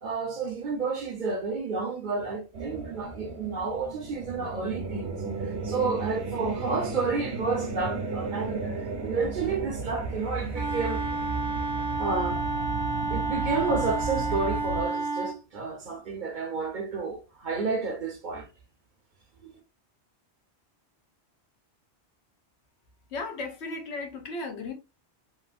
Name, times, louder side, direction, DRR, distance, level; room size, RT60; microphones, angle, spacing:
voice 1, 0.0-5.2 5.4-11.0 12.0-12.4 13.1-18.5 19.4-19.5, right 4 dB, 50° right, 0.7 m, -31 dB
sound 1, 2.5-14.8, right 3 dB, 75° right, 1.0 m, -34 dB
Wind instrument woodwind instrument, 10.5-15.4, right 3 dB, 5° right, 0.6 m, -30 dB
voice 2, 23.1-24.7, left 3 dB, 80° left, 1.0 m, -35 dB
3.0 x 2.5 x 2.4 m
omnidirectional pair, 1.1 m